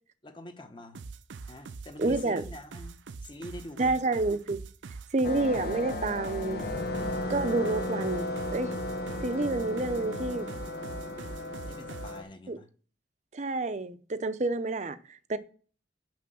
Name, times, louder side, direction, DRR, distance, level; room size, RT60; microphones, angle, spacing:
voice 1, 0.2-1.0 1.5-4.0 11.7-12.7, left 1 dB, 25° left, 1.1 m, -45 dB
sound 1, 0.9-12.2, right 4 dB, 85° right, 0.5 m, -43 dB
voice 2, 2.0-2.4 3.8-4.6 5.1-6.6 7.3-8.7 9.2-10.5 12.5-12.6 13.3-15.4, right 2 dB, 40° right, 0.6 m, -29 dB
sound 2, 5.2-12.2, left 1 dB, 60° left, 1.4 m, -35 dB
6.5 x 6.0 x 7.3 m
head